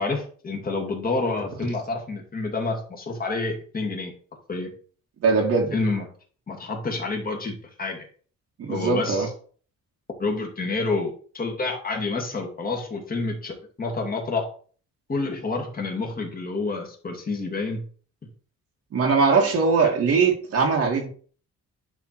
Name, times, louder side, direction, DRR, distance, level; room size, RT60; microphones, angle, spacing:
voice 1, 0.0-4.1 4.5-4.7 5.7-6.1 6.5-8.1 8.7-9.3 10.2-14.5 15.1-17.8, left 3 dB, 30° left, 1 dB, 2.3 m, -28 dB
voice 2, 5.2-5.8 8.6-9.3 18.9-21.1, right 4 dB, 55° right, 0 dB, 1.7 m, -21 dB
10.5 x 3.5 x 4.5 m, 0.43 s
cardioid pair, 130°, 29 cm